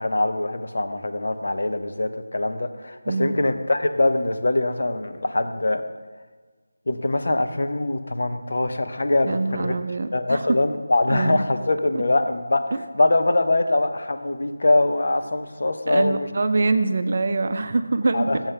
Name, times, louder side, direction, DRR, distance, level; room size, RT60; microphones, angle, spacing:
voice 1, 0.0-5.8 6.9-9.8 10.1-16.3 18.1-18.4, left 2 dB, 60° left, 8 dB, 0.7 m, -23 dB
voice 2, 3.1-3.4 9.2-10.4 11.1-11.5 12.7-12.8 15.9-18.3, right 3 dB, 45° right, 9 dB, 0.5 m, -24 dB
7.2 x 5.5 x 6.6 m, 1.4 s
figure-of-eight pair, 170°, 0 cm